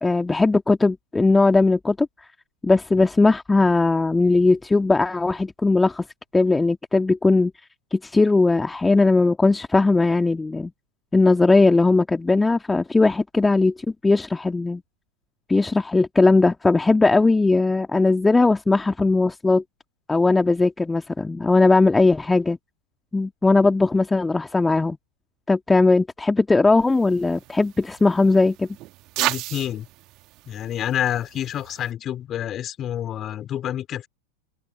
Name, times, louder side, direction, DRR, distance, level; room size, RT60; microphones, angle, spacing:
voice 1, 0.0-2.1 2.6-6.0 6.3-7.5 7.9-10.7 11.1-13.7 14.0-14.8 15.5-19.6 20.1-22.6 23.1-25.0 25.5-28.7, left 3 dB, 10° left, 1.8 m, -19 dB
sound 1, 26.8-31.9, right 19 dB, 40° right, 2.0 m, -34 dB
voice 2, 29.2-29.9 30.4-34.1, left 11 dB, 30° left, 4.8 m, -28 dB
open air
figure-of-eight pair, 90°, 0 cm